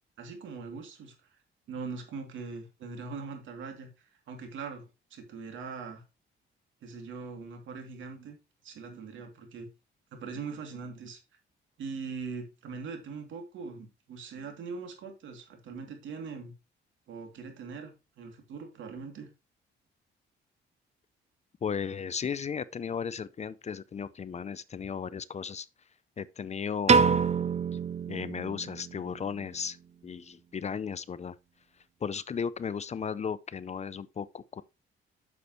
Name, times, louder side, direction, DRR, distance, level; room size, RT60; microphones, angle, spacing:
voice 1, 0.2-1.1 1.7-6.0 6.8-8.3 8.6-9.7 10.1-11.2 11.8-16.5 17.1-19.3, right 5 dB, 75° right, 2.7 m, -41 dB
voice 2, 21.6-25.7 26.2-27.2 28.1-29.8 30.0-31.4 32.0-34.6, left 6 dB, 35° left, 0.5 m, -35 dB
Piano, 26.9-29.1, right 5 dB, 35° right, 0.6 m, -26 dB
8.3 x 7.0 x 3.0 m
cardioid pair, 90°, 20 cm